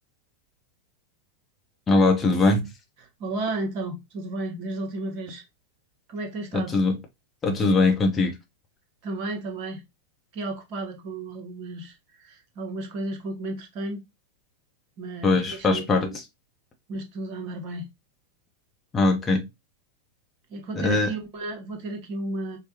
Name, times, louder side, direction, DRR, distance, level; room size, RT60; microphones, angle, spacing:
voice 1, 1.9-2.7 6.5-7.0 7.4-8.3 15.2-16.2 18.9-19.5 20.7-21.1, left 3 dB, 20° left, 0.8 m, -21 dB
voice 2, 3.2-5.4 6.1-6.8 9.0-9.8 10.3-14.0 15.0-16.2 16.9-17.9 20.5-22.6, right 2 dB, 45° right, 1.1 m, -33 dB
4.6 x 2.2 x 2.7 m
figure-of-eight pair, 90°, 0 cm